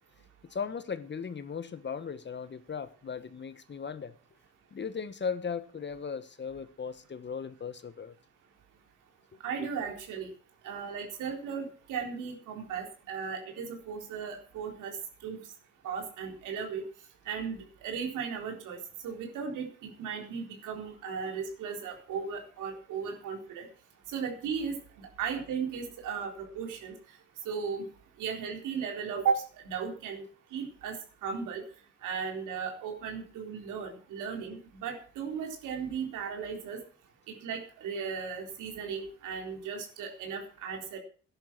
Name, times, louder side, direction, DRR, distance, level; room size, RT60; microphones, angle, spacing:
voice 1, 0.5-4.1 4.7-8.1 9.6-9.7, left 6 dB, 35° left, 1.3 m, -37 dB
voice 2, 9.4-10.3 10.6-14.9 15.2-15.4 15.8-16.8 17.3-18.8 19.0-23.7 24.1-26.9 27.5-27.8 28.2-30.2 30.5-31.6 32.0-36.8 37.4-41.0, right 6 dB, 90° right, 4.0 m, -36 dB
13.5 x 10.5 x 6.1 m
cardioid pair, 90°, 30 cm